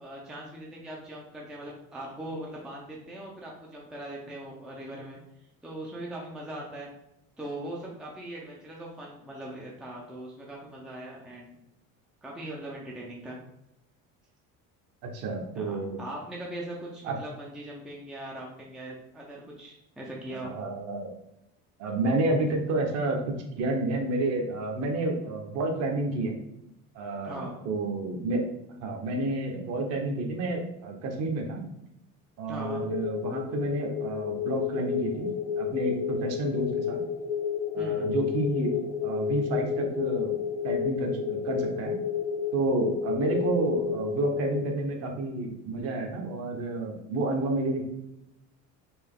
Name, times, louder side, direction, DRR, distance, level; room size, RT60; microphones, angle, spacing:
voice 1, 0.0-5.2 5.6-6.9 7.4-11.6 12.2-13.4 15.5-20.5 27.2-27.6 32.5-32.9 37.8-38.1, right 1 dB, ahead, -3 dB, 0.5 m, -40 dB
voice 2, 15.0-16.1 17.0-17.1 20.3-21.1 21.8-26.4 26.9-28.4 28.8-31.6 32.4-35.3 35.6-37.0 37.7-38.8 39.0-40.4 40.6-42.0 42.5-47.8, right 2 dB, 50° right, 2 dB, 1.0 m, -30 dB
sound 1, 32.6-44.6, left 7 dB, 60° left, 0.6 m, -31 dB
4.5 x 3.0 x 3.6 m, 0.84 s
cardioid pair, 165°, 33 cm